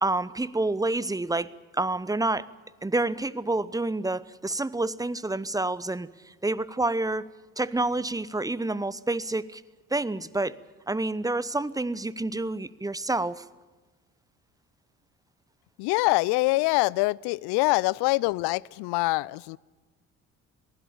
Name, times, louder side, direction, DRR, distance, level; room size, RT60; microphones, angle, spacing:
voice 1, 0.0-2.5 2.8-7.3 7.6-9.6 9.9-10.5 10.9-13.4, right 2 dB, 10° right, 0.9 m, -28 dB
voice 2, 15.8-19.6, left 23 dB, 70° left, 0.6 m, -24 dB
22.5 x 15.5 x 8.9 m
hypercardioid pair, 50°, 41 cm